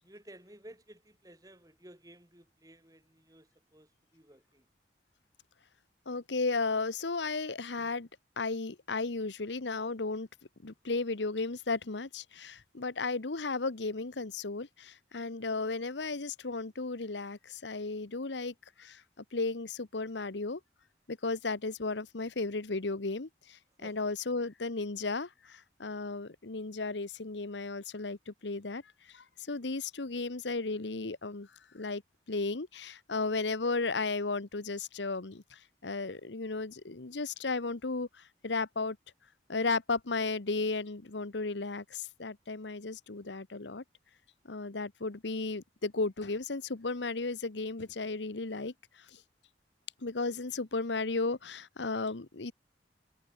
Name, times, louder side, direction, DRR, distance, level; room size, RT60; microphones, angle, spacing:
voice 1, 0.0-4.7 23.8-24.1, right 1 dB, 20° right, 5.7 m, -55 dB
voice 2, 6.1-8.1 8.4-10.3 10.6-19.0 19.3-20.6 21.1-32.0 32.3-39.0 39.5-43.8 44.4-49.2 50.0-52.5, left 3 dB, 85° left, 1.1 m, -34 dB
head